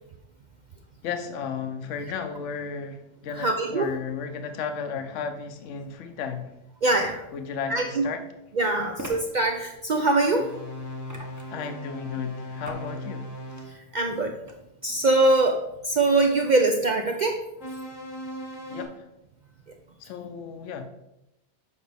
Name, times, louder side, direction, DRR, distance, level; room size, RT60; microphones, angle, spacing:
voice 1, 1.0-6.5 7.3-8.2 11.5-13.3 18.7-19.1 20.0-20.9, left 6 dB, 75° left, 7 dB, 1.0 m, -34 dB
voice 2, 3.3-3.9 6.8-7.2 7.7-8.0 8.6-10.5 13.9-14.3 14.8-15.6 15.8-17.4, right 2 dB, 60° right, 3 dB, 0.5 m, -22 dB
sound 1, 7.5-7.6 9.0-9.2 11.1-11.6 12.6-12.9 13.4-13.7 14.5-14.6, right 1 dB, 20° right, 0.7 m, -39 dB
sound 2, 10.3-13.7 17.6-18.9, left 1 dB, 90° left, 1.7 m, -38 dB
7.1 x 5.0 x 3.4 m, 0.89 s
omnidirectional pair, 1.3 m